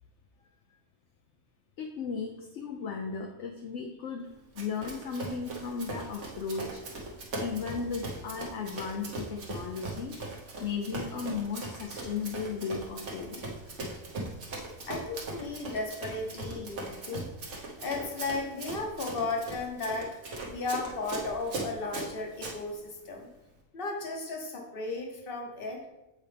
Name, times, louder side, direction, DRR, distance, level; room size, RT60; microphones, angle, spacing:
voice 1, 1.8-4.3 4.5-6.8 7.3-10.1 10.6-13.5, left 5 dB, 65° left, 2 dB, 0.9 m, -35 dB
Run, 4.6-22.6, right 2 dB, 60° right, 1.5 m, -39 dB
voice 2, 14.9-17.3 17.8-20.1 20.5-23.3 23.7-25.8, left 3 dB, 45° left, 1 dB, 1.2 m, -35 dB
7.7 x 4.5 x 3.4 m, 0.96 s
omnidirectional pair, 1.4 m